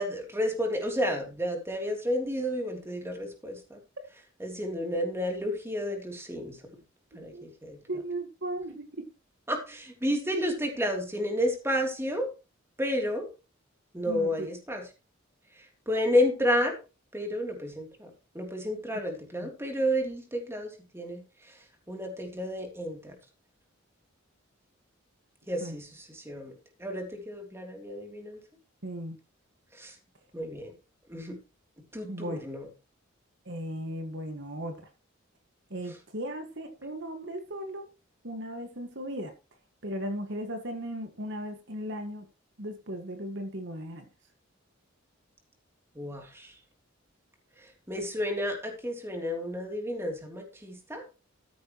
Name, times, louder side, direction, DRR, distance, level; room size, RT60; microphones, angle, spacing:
voice 1, 0.0-3.8 4.4-6.6 7.1-7.8 9.5-12.3 12.8-13.3 13.9-14.8 15.5-16.8 17.1-21.6 21.9-23.1 25.5-26.5 26.8-28.4 29.7-29.9 30.3-30.7 31.1-31.4 31.9-32.7 45.9-46.5 47.6-51.0, equal, 15° right, 2 dB, 3.3 m, -31 dB
voice 2, 7.9-9.1 14.1-14.5 19.4-19.5 25.6-25.8 28.8-29.2 32.1-32.4 33.5-34.8 35.7-37.9 38.2-39.3 39.8-42.3 42.6-44.1, right 1 dB, 60° right, 6 dB, 2.0 m, -36 dB
14.0 x 9.4 x 3.2 m, 0.29 s
head